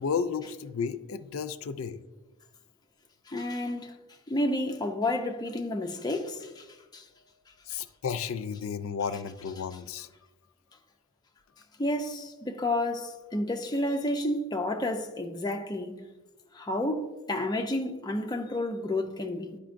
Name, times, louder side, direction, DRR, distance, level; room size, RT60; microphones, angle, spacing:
voice 1, 0.0-2.0 7.7-10.1, left 6 dB, 75° left, 0.4 m, -33 dB
voice 2, 3.3-4.0 4.3-6.7 6.9-7.0 11.8-16.0 16.5-19.6, left 1 dB, 20° left, 0.5 m, -30 dB
10.0 x 5.0 x 2.5 m
head